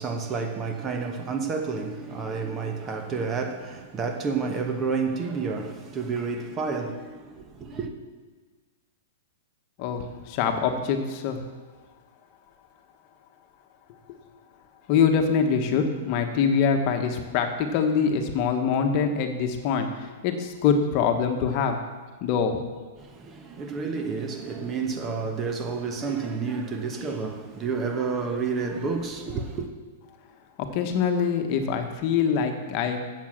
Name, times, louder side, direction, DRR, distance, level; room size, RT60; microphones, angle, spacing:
voice 1, 0.0-7.9 23.0-29.7, right 4 dB, 25° right, 1.0 m, -30 dB
voice 2, 9.8-11.4 14.9-21.8 22.2-22.6 30.6-33.0, left 6 dB, 45° left, 1.2 m, -24 dB
7.6 x 7.2 x 7.4 m
hypercardioid pair, 140°, 0 cm